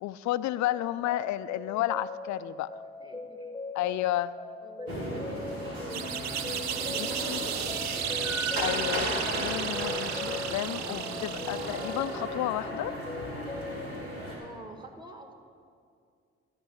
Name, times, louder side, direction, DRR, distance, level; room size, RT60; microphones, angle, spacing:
voice 1, 0.0-2.7 3.7-4.3 6.9-7.4 8.6-12.9, left 14 dB, 65° left, 15 dB, 0.5 m, -32 dB
sound 1, 0.6-13.9, left 3 dB, 5° left, 1.2 m, -41 dB
voice 2, 3.0-3.5 4.6-6.3 6.9-8.0 14.4-15.3, right 1 dB, 15° right, 4 dB, 1.7 m, -47 dB
sound 2, 4.9-14.4, equal, 85° right, 2.0 m, -36 dB
sound 3, 5.9-12.3, right 9 dB, 60° right, 0.7 m, -34 dB
13.0 x 5.4 x 7.1 m, 2.3 s
hypercardioid pair, 45°, 31 cm